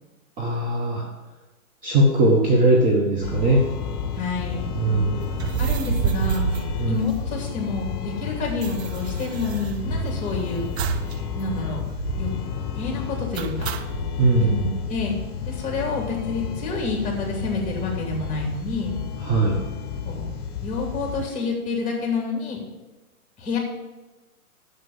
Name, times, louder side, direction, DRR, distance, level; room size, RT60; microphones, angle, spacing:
voice 1, 0.4-1.0 1.8-3.6 4.7-5.4 6.8-7.0 14.2-14.7 19.2-19.6, right 2 dB, 20° right, -2 dB, 1.2 m, -20 dB
sound 1, 3.2-21.3, left 7 dB, 35° left, 1.1 m, -31 dB
voice 2, 4.1-5.0 5.6-6.5 6.8-10.7 11.3-11.8 12.2-13.7 14.3-14.5 14.9-15.2 15.4-18.9 20.0-20.2 20.6-22.6 23.4-23.6, left 3 dB, 15° left, 0 dB, 2.8 m, -28 dB
sound 2, 5.3-7.6 7.9-8.0 8.2-10.3 10.8-11.2 11.5-11.6 11.9-12.4 13.3-14.1, right 7 dB, 50° right, 0.7 m, -28 dB
7.5 x 7.0 x 6.9 m, 1.2 s
hypercardioid pair, 135°, 43 cm